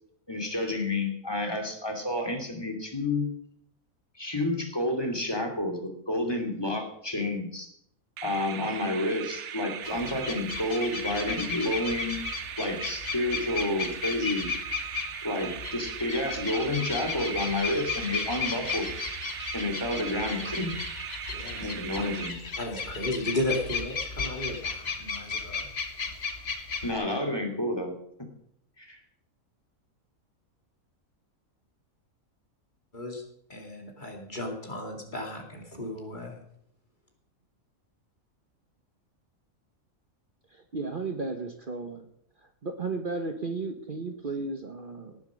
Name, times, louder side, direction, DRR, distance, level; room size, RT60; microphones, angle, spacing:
voice 1, 0.3-3.3 4.2-7.7 8.2-12.2 12.6-14.5 15.2-18.9 19.5-20.7 21.6-22.4 26.8-28.0 28.8-29.0, left 1 dB, 15° left, 2 dB, 2.6 m, -30 dB
sound 1, 8.2-22.8, right 9 dB, 60° right, 1.0 m, -39 dB
sound 2, 9.8-26.9, left 5 dB, 50° left, 1.6 m, -35 dB
voice 2, 21.3-21.8 22.6-25.7 32.9-33.2 33.5-36.4, left 1 dB, 35° left, 1 dB, 2.5 m, -34 dB
voice 3, 40.5-42.1 42.4-45.2, right 3 dB, 40° right, 5 dB, 1.1 m, -34 dB
18.0 x 7.3 x 6.3 m, 0.70 s
omnidirectional pair, 1.5 m